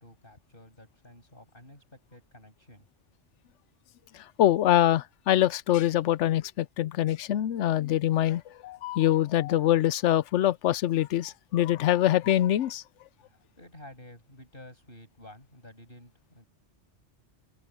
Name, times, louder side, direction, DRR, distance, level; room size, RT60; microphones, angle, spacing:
voice 1, 0.0-2.9 13.2-16.5, left 1 dB, 50° left, 8.4 m, -51 dB
voice 2, 4.4-12.8, left 12 dB, 85° left, 0.9 m, -24 dB
omnidirectional pair, 1.2 m